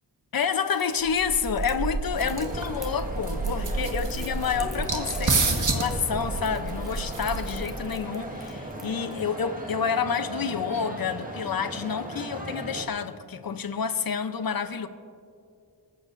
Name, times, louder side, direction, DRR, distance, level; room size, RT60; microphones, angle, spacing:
voice 1, 0.3-14.9, left 6 dB, 60° left, 0.8 m, -29 dB
Crackle, 0.7-9.2, equal, ahead, 1.4 m, -47 dB
sound 1, 1.1-7.7, right 3 dB, 50° right, 1.6 m, -29 dB
sound 2, 2.1-12.9, right 1 dB, 20° right, 1.6 m, -37 dB
26.5 x 14.5 x 2.6 m
wide cardioid pair, 130°, 41 cm